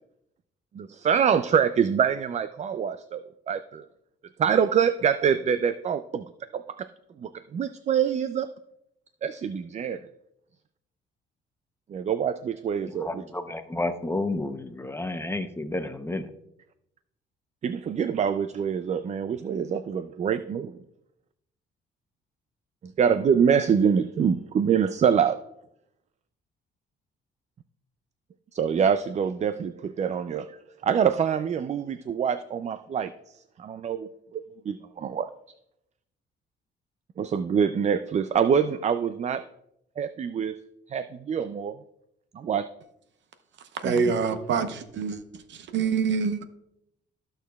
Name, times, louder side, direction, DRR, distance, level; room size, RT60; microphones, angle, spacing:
voice 1, 0.7-3.9 4.4-6.9 7.2-8.5 9.2-10.1 11.9-13.2 17.6-20.8 22.8-25.4 28.5-30.6 30.8-33.1 33.6-35.3 37.2-39.4 40.0-40.6 40.9-41.8 42.3-42.7 43.8-44.0, right 7 dB, 35° right, 0.3 m, -25 dB
voice 2, 12.9-16.3, left 2 dB, 10° left, 0.7 m, -31 dB
voice 3, 43.7-45.2 45.5-46.4, right 5 dB, 65° right, 0.8 m, -26 dB
14.0 x 6.4 x 2.3 m
cardioid pair, 90°, 20 cm